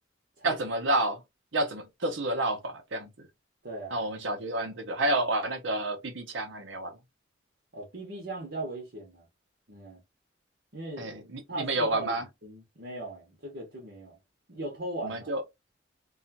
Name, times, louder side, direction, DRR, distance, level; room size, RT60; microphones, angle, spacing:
voice 1, 0.4-1.2 1.5-3.3 3.9-7.0 11.0-12.2 15.0-15.4, right 2 dB, 80° right, 0.9 m, -30 dB
voice 2, 3.6-4.0 7.7-9.3 9.7-10.0 10.7-11.2 11.5-14.2 14.5-15.3, right 2 dB, 60° right, 1.1 m, -38 dB
2.7 x 2.4 x 2.7 m
head